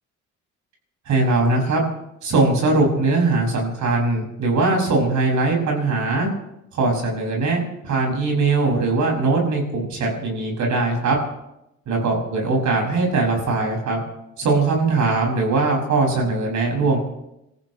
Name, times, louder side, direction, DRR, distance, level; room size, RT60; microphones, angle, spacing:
voice 1, 1.1-1.8 2.2-6.3 6.7-11.2 11.9-14.0 14.4-17.0, right 3 dB, 70° right, 0 dB, 6.7 m, -20 dB
29.0 x 15.0 x 3.3 m, 0.88 s
cardioid pair, 90°, 30 cm